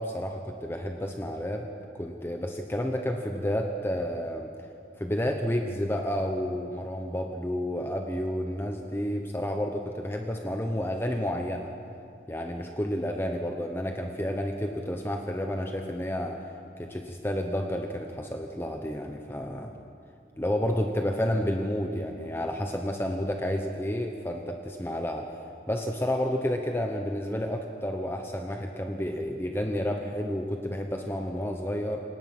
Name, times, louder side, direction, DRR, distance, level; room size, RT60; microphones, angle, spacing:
voice 1, 0.0-1.7 1.9-4.5 5.0-11.7 12.3-16.4 16.8-19.7 20.4-25.3 25.7-32.0, equal, 15° left, 3 dB, 1.0 m, -30 dB
28.0 x 19.0 x 6.1 m, 2.5 s
head